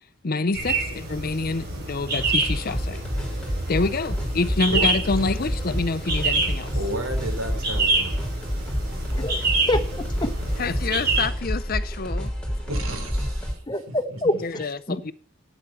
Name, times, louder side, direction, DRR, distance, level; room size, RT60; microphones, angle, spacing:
voice 1, 0.2-3.0 3.7-6.7 10.6-12.3 14.4-15.1, left 3 dB, 45° left, 0.6 m, -27 dB
sound 1, 0.5-11.2, right 3 dB, 50° right, 3.9 m, -28 dB
sound 2, 2.2-13.5, equal, 5° left, 4.1 m, -29 dB
voice 2, 6.7-8.2 8.7-9.1 11.1-11.4 12.6-14.7, right 1 dB, 75° right, 3.4 m, -34 dB
voice 3, 9.1-10.3 13.7-14.3 14.9-15.0, left 1 dB, 20° left, 1.1 m, -26 dB
9.0 x 8.6 x 7.0 m
head